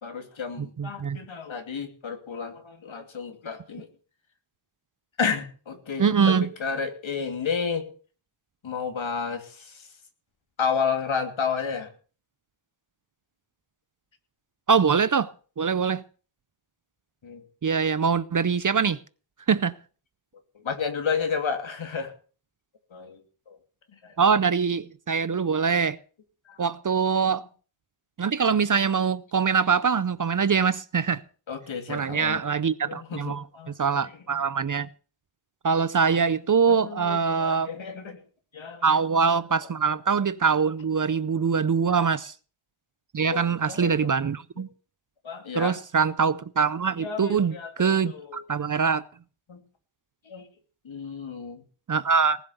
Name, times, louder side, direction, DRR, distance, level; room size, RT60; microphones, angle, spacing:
voice 1, 0.0-3.9 5.2-7.9 8.6-9.9 10.6-11.9 17.2-17.4 20.5-22.1 22.9-23.6 23.9-24.2 26.5-26.6 31.5-32.5 32.8-33.7 34.0-34.1 36.7-38.2 38.5-38.8 39.6-39.7 41.9-42.1 43.2-44.1 45.2-45.8 47.0-48.4 49.5-49.6 50.2-50.5 50.8-51.6, left 6 dB, 65° left, 2.8 m, -32 dB
voice 2, 0.8-1.2 6.0-6.5 14.7-15.3 15.6-16.0 17.6-19.0 19.5-19.7 24.2-26.0 26.6-27.5 28.2-31.2 31.9-33.4 33.8-34.9 35.6-37.7 38.8-42.3 43.1-44.7 45.5-49.0 51.9-52.4, right 6 dB, 40° right, 0.6 m, -23 dB
19.5 x 7.4 x 6.8 m
wide cardioid pair, 150°, 50 cm